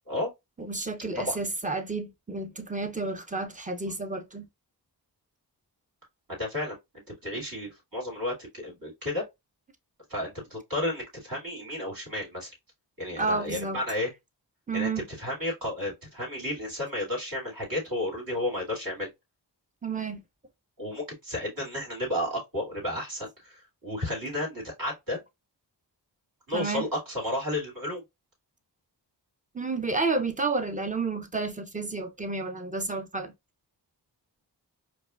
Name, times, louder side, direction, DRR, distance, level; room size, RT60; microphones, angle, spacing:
voice 1, 0.6-4.5 13.2-13.8 14.7-15.1 19.8-20.2 26.5-26.8 29.5-33.3, right 3 dB, 20° right, 0.6 m, -31 dB
voice 2, 6.4-6.8 7.2-9.2 10.1-12.5 13.0-14.1 14.7-14.9 15.2-19.1 20.8-25.2 26.5-28.0, left 1 dB, 50° right, 2.3 m, -32 dB
4.6 x 2.3 x 2.4 m
cardioid pair, 55°, 43 cm